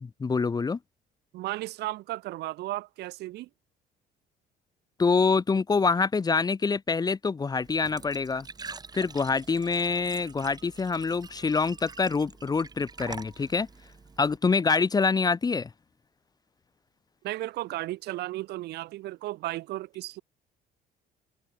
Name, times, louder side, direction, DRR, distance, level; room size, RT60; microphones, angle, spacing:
voice 1, 0.0-0.8 5.0-8.5 8.9-13.7 14.2-15.7, left 4 dB, 25° left, 0.9 m, -26 dB
voice 2, 1.3-3.5 17.2-20.2, right 17 dB, 80° right, 1.8 m, -34 dB
Glass / Trickle dribble / Fill (with liquid), 7.6-14.4, right 4 dB, 25° right, 2.4 m, -45 dB
cardioid pair, 110°, 17 cm